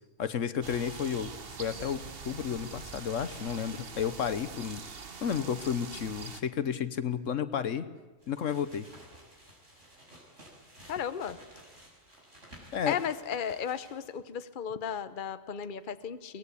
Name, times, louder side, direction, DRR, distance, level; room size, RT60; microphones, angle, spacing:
voice 1, 0.2-1.3 1.6-4.8 5.2-7.9 8.3-8.9 12.7-13.0, left 8 dB, 70° left, 13 dB, 1.3 m, -32 dB
sound 1, 0.6-6.4, right 5 dB, 45° right, 1.4 m, -44 dB
sound 2, 8.2-14.2, right 1 dB, 65° right, 6.8 m, -54 dB
voice 2, 10.9-11.4 12.9-16.4, left 8 dB, 45° left, 12 dB, 1.0 m, -35 dB
24.0 x 19.0 x 8.4 m, 1.3 s
omnidirectional pair, 1.4 m